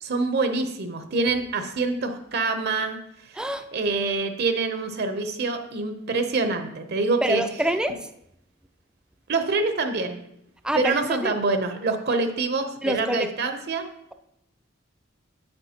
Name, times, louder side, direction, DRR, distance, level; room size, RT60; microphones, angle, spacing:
voice 1, 0.0-3.0 3.2-7.4 9.3-10.2 10.7-13.9, right 3 dB, 55° right, 7 dB, 0.7 m, -26 dB
voice 2, 7.2-8.1 10.6-11.0 11.2-11.3 12.8-13.3, equal, 5° right, 8 dB, 0.3 m, -25 dB
9.7 x 7.8 x 2.9 m, 0.79 s
head